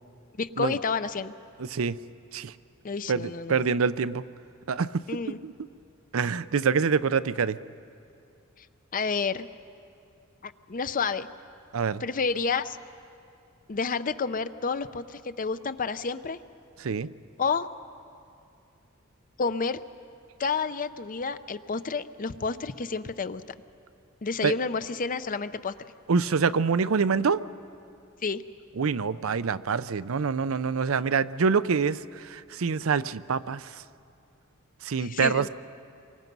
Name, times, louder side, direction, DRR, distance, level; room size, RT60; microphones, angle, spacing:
voice 1, 0.4-1.3 2.8-3.6 5.1-5.4 8.9-9.5 10.4-11.3 12.0-12.8 13.7-16.4 17.4-17.7 19.4-19.8 20.4-23.4 24.2-25.7 28.2-28.4 35.0-35.5, left 5 dB, 40° left, 13 dB, 0.6 m, -30 dB
voice 2, 3.1-4.2 4.7-5.0 5.4-5.5 6.1-7.6 11.7-12.0 16.8-17.1 24.4-24.5 26.1-27.4 28.8-33.6 34.8-35.5, right 5 dB, 70° right, 15 dB, 0.5 m, -25 dB
28.0 x 24.0 x 5.4 m, 2.5 s
head